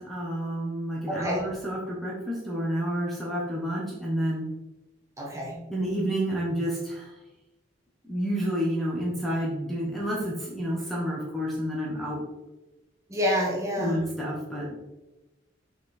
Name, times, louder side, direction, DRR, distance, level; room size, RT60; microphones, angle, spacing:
voice 1, 0.0-4.5 5.7-7.1 8.0-12.2 13.8-14.7, equal, ahead, -5 dB, 1.2 m, -29 dB
voice 2, 1.1-1.4 5.2-5.6 13.1-14.0, equal, 15° right, -2 dB, 1.4 m, -27 dB
6.2 x 4.3 x 4.3 m, 1.0 s
head